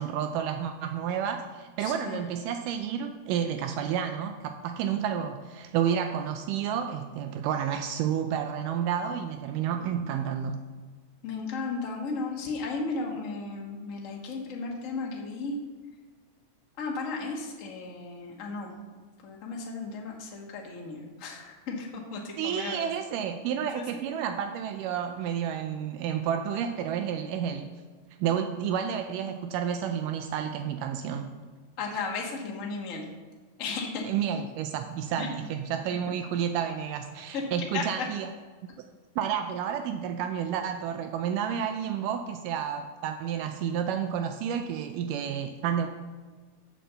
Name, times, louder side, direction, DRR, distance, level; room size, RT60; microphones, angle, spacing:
voice 1, 0.0-10.6 22.4-27.7 28.2-31.3 34.0-38.3 39.2-45.9, right 8 dB, 85° right, 7 dB, 2.1 m, -30 dB
voice 2, 1.8-2.2 11.2-15.6 16.8-18.7 19.2-22.9 23.7-23.8 31.8-33.0 33.6-34.0 35.2-35.3 37.3-37.4 37.7-38.0, left 4 dB, 60° left, -1 dB, 0.8 m, -35 dB
7.4 x 7.3 x 6.8 m, 1.4 s
omnidirectional pair, 3.8 m